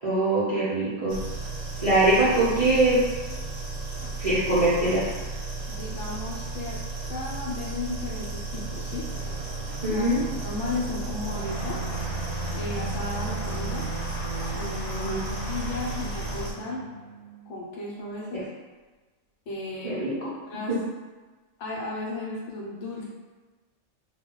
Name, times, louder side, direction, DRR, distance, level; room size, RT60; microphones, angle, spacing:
voice 1, 0.0-1.2 1.8-3.0 4.2-5.1 9.8-10.2 15.0-15.2 19.8-20.1 20.7-20.8, right 2 dB, 45° right, -11 dB, 0.5 m, -22 dB
sound 1, 1.1-16.5, right 3 dB, 65° right, 0.8 m, -34 dB
voice 2, 5.7-6.8 7.0-9.1 9.9-11.8 12.5-13.9 14.5-16.8 17.5-18.4 19.5-20.8 21.6-23.0, left 2 dB, 65° left, -4 dB, 0.9 m, -35 dB
sound 2, 8.5-17.7, right 3 dB, 40° left, 0.8 m, -39 dB
sound 3, 11.4-16.5, left 1 dB, 85° left, 1.1 m, -36 dB
2.2 x 2.2 x 3.6 m, 1.3 s
omnidirectional pair, 1.5 m